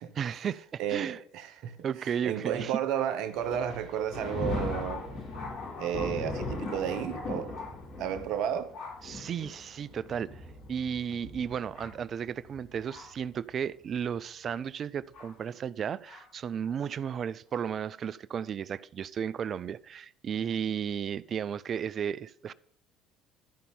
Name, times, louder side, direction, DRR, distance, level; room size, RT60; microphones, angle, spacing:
voice 1, 0.1-1.2 1.8-2.8 9.0-22.5, right 8 dB, 45° right, 0.4 m, -34 dB
voice 2, 0.8-1.8 2.2-5.0 5.8-7.5 8.0-8.7, right 9 dB, 65° right, 1.1 m, -32 dB
Thunder, 3.3-13.3 14.0-14.1 15.1-15.3 16.1-16.2, left 2 dB, 65° left, 5.3 m, -39 dB
12.5 x 5.6 x 5.4 m
hypercardioid pair, 70°, 0 cm